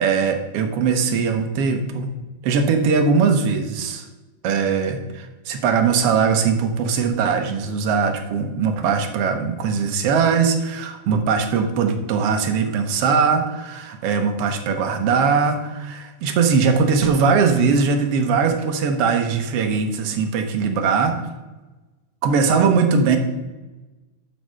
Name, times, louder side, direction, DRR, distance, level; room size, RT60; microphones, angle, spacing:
voice 1, 0.0-2.1 2.4-4.1 4.4-21.2 22.2-23.2, right 5 dB, 65° right, 5 dB, 1.6 m, -20 dB
11.0 x 4.3 x 5.5 m, 1.1 s
omnidirectional pair, 3.5 m